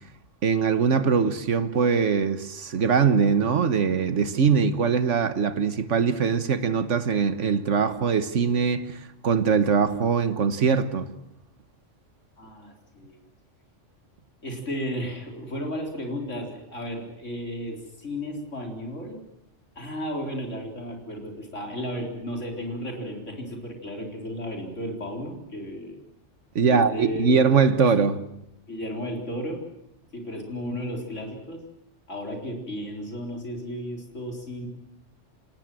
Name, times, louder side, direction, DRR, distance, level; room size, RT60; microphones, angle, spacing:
voice 1, 0.4-11.1 26.5-28.2, right 5 dB, 80° right, 1.6 m, -22 dB
voice 2, 12.4-13.2 14.4-19.2 19.8-26.0 26.7-27.5 28.7-29.6 30.1-31.6 32.1-34.7, equal, 90° left, 4.4 m, -34 dB
28.0 x 18.0 x 7.7 m
omnidirectional pair, 1.2 m